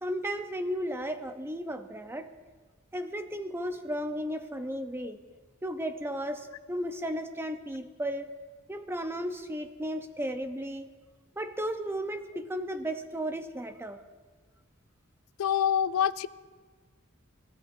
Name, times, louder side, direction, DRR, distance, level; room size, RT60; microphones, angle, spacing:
voice 1, 0.0-2.3 2.9-5.2 5.6-8.3 8.7-10.9 11.4-14.0, equal, 10° right, 8 dB, 0.7 m, -34 dB
voice 2, 15.4-16.3, left 9 dB, 90° left, 15 dB, 0.4 m, -26 dB
29.5 x 14.0 x 2.6 m, 1.5 s
head